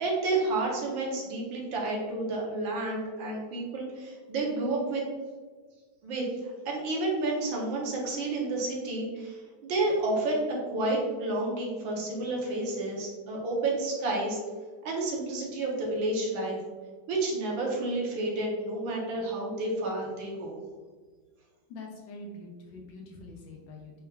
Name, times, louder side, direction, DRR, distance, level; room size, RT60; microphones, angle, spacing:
voice 1, 0.0-5.0 6.0-14.4 14.8-16.6 17.1-20.6, right 2 dB, 75° right, -2 dB, 1.5 m, -30 dB
voice 2, 21.7-24.0, left 2 dB, 70° left, 0 dB, 1.3 m, -44 dB
4.3 x 3.5 x 2.3 m, 1.4 s
omnidirectional pair, 2.2 m